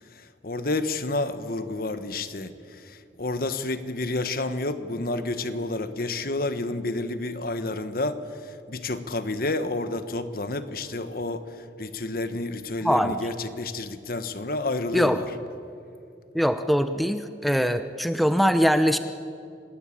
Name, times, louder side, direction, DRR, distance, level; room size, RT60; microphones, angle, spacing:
voice 1, 0.1-15.2, left 2 dB, 55° left, 10 dB, 1.3 m, -30 dB
voice 2, 12.8-13.1 14.9-15.2 16.3-19.0, equal, ahead, 9 dB, 0.7 m, -22 dB
27.0 x 20.0 x 8.6 m, 2.5 s
head